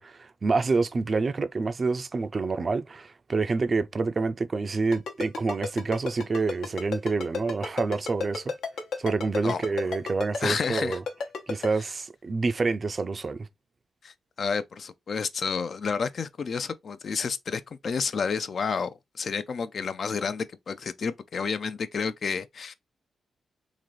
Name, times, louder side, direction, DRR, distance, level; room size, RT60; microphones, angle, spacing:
voice 1, 0.0-8.5 9.0-11.0 11.5-13.5, right 4 dB, 35° right, 0.4 m, -27 dB
Ringtone, 4.9-11.7, left 4 dB, 85° left, 1.0 m, -31 dB
voice 2, 10.4-11.0 14.0-22.7, left 5 dB, 50° left, 0.4 m, -30 dB
3.7 x 2.5 x 3.1 m
cardioid pair, 105°, 0 cm